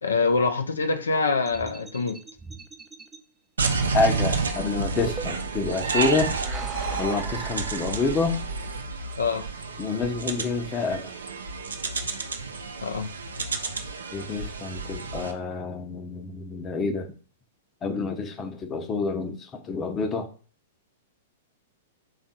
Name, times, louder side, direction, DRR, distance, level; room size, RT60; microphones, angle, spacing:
voice 1, 0.0-2.2 9.2-9.5 12.8-13.1, left 4 dB, 80° left, 8 dB, 0.5 m, -25 dB
sound 1, 1.5-3.2 4.1-5.6 6.2-8.4, right 4 dB, 15° right, 0.4 m, -40 dB
sound 2, 3.6-15.3, right 4 dB, 80° right, 0.6 m, -30 dB
voice 2, 3.9-6.3 7.0-8.4 9.8-11.1 14.1-17.1 17.8-20.3, left 4 dB, 25° left, 6 dB, 0.7 m, -28 dB
3.4 x 2.4 x 4.1 m, 0.39 s
figure-of-eight pair, 110°, 0 cm